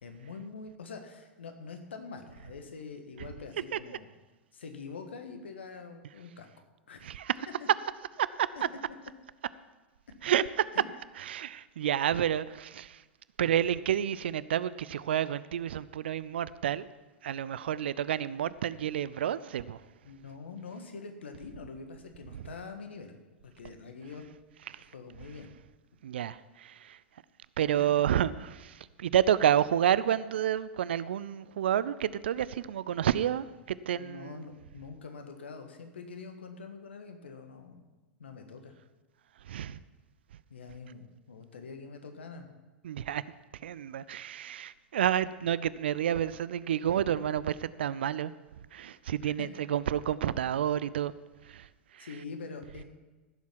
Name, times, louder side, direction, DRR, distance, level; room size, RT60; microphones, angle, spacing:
voice 1, 0.0-4.1 4.5-6.5 6.9-7.1 10.7-10.8 20.0-24.2 24.9-25.5 27.7-27.8 34.0-37.9 38.2-38.7 40.5-42.5 49.2-49.5 52.0-52.8, left 4 dB, 75° left, 1.5 m, -45 dB
voice 2, 7.0-7.5 8.2-8.5 10.2-10.7 11.2-13.0 13.4-16.9 17.2-19.8 22.3-22.5 24.7-24.9 26.0-27.0 27.6-34.4 39.4-39.8 42.8-43.2 43.5-48.3 48.7-51.1 51.4-52.1, right 10 dB, 65° right, 0.5 m, -30 dB
15.5 x 7.3 x 5.8 m
figure-of-eight pair, 90°, 6 cm